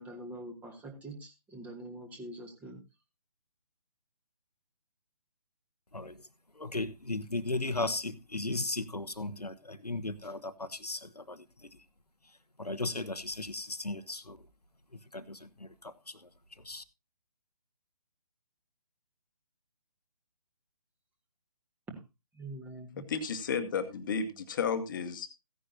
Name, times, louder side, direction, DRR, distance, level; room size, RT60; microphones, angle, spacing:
voice 1, 0.0-2.8 21.9-22.0 22.3-23.0, right 1 dB, 10° right, 1.5 m, -44 dB
voice 2, 5.9-6.3 6.5-11.8 12.2-14.5 14.9-16.8, left 2 dB, 90° left, 1.0 m, -37 dB
voice 3, 23.0-25.3, left 6 dB, 35° left, 1.3 m, -33 dB
15.5 x 10.0 x 2.8 m
figure-of-eight pair, 140°, 20 cm